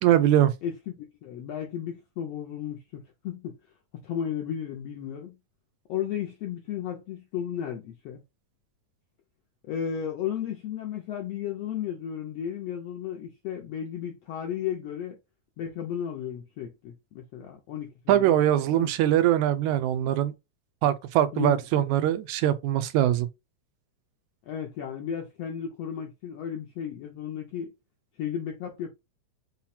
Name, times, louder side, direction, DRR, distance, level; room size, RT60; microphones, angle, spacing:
voice 1, 0.0-0.5 18.1-20.3 20.8-23.3, right 12 dB, 80° right, 1.7 m, -22 dB
voice 2, 0.6-3.5 4.0-5.4 5.9-8.2 9.6-15.2 15.6-18.4 18.7-18.9 21.3-21.9 24.5-27.7 28.2-28.9, left 9 dB, 75° left, 1.5 m, -34 dB
5.7 x 2.2 x 4.2 m
omnidirectional pair, 3.7 m